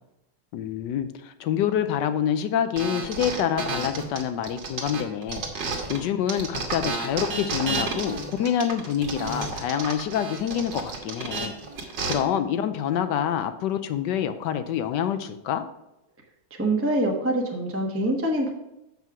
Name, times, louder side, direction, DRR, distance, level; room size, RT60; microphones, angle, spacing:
voice 1, 0.5-11.5 12.1-15.6, left 9 dB, 70° left, 10 dB, 1.1 m, -27 dB
sound 1, 2.7-6.0 6.3-12.1, right 4 dB, 70° right, 2.2 m, -31 dB
voice 2, 16.5-18.5, right 1 dB, 10° right, 0 dB, 0.9 m, -25 dB
7.4 x 5.6 x 6.0 m, 0.90 s
omnidirectional pair, 2.1 m